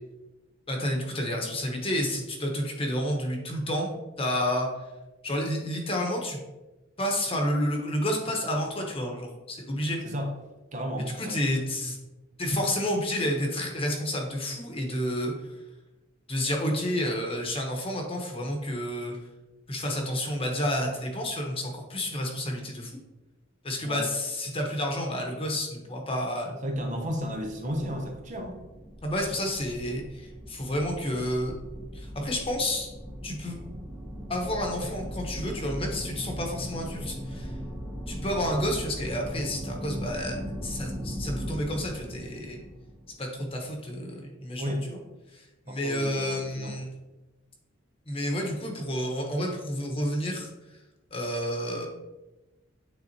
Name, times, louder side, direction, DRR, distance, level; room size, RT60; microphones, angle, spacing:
voice 1, 0.7-3.9 4.2-4.7 5.2-6.4 7.0-10.0 11.2-12.0 12.4-15.3 16.3-19.2 19.7-23.0 23.6-26.6 29.0-31.5 31.9-32.9 33.2-33.6 34.3-37.5 38.1-42.6 43.2-45.0 45.3-46.9 48.1-50.5 51.1-51.9, equal, 30° left, 1 dB, 1.1 m, -30 dB
voice 2, 10.0-10.4 10.7-11.4 23.8-24.1 26.6-28.6 44.6-44.9 45.7-46.8, equal, 40° right, 2 dB, 0.8 m, -33 dB
sound 1, 27.5-43.6, equal, 10° right, 0.8 m, -39 dB
9.5 x 3.9 x 2.8 m, 1.0 s
head